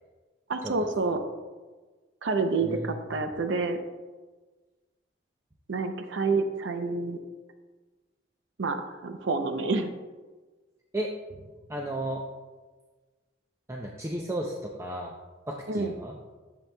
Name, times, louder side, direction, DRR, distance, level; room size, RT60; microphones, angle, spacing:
voice 1, 0.5-1.2 2.2-3.8 5.7-7.2 8.6-9.9 15.7-15.9, right 3 dB, 85° right, 7 dB, 0.6 m, -28 dB
voice 2, 11.7-12.2 13.7-15.1 15.5-16.2, right 1 dB, 15° right, -1 dB, 0.5 m, -33 dB
10.5 x 7.2 x 2.2 m, 1.3 s
head